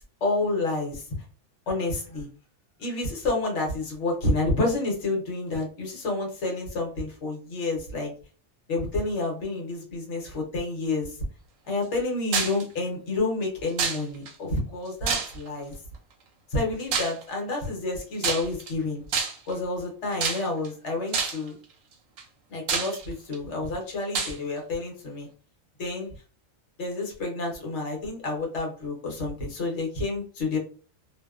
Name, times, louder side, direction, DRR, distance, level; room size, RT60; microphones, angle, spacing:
voice 1, 0.2-1.1 1.7-2.3 2.8-8.1 8.7-11.2 11.6-15.7 16.5-19.0 19.5-21.5 22.5-25.3 25.8-26.1 26.8-30.6, left 2 dB, 65° left, 0 dB, 1.1 m, -29 dB
sound 1, 12.3-12.6 13.8-14.3 15.1-15.6 16.9-17.2 18.2-18.7 19.1-19.5 20.2-20.7 21.1-21.5 22.2-22.3 22.7-23.4 24.1-24.4, right 5 dB, 85° right, 1.0 m, -27 dB
2.6 x 2.1 x 2.3 m, 0.38 s
omnidirectional pair, 1.3 m